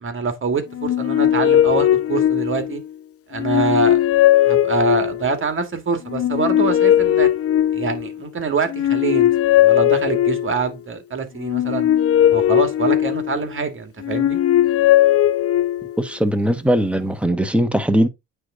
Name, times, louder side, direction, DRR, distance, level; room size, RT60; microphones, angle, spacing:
voice 1, 0.0-2.8 3.3-4.0 4.5-7.3 7.7-9.3 9.6-11.9 12.3-14.4, right 4 dB, 40° right, 1.9 m, -24 dB
sound 1, 0.7-2.9 3.3-5.4 6.1-8.2 8.7-10.7 11.4-13.5 14.0-16.0, left 12 dB, 50° left, 0.6 m, -18 dB
voice 2, 16.0-18.1, equal, 5° right, 1.2 m, -19 dB
8.9 x 3.4 x 3.8 m
cardioid pair, 90°, 30 cm